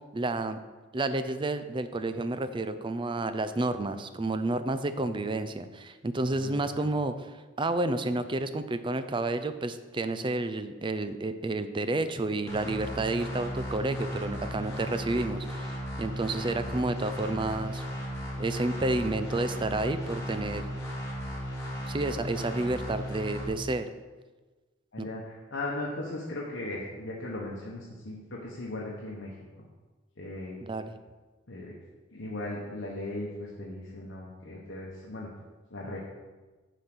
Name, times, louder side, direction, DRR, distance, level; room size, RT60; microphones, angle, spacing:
voice 1, 0.1-0.6 0.9-7.3 7.6-17.8 18.4-20.7 21.9-23.9 25.0-25.1 30.6-31.0, right 2 dB, 25° right, 11 dB, 0.5 m, -30 dB
voice 2, 6.3-6.6 24.9-29.3 30.2-30.6 31.5-31.7 32.1-35.3 35.7-36.0, left 2 dB, 70° left, -4 dB, 1.2 m, -37 dB
sound 1, 12.5-23.5, equal, 15° left, 2.6 m, -36 dB
9.5 x 5.1 x 6.1 m, 1.3 s
head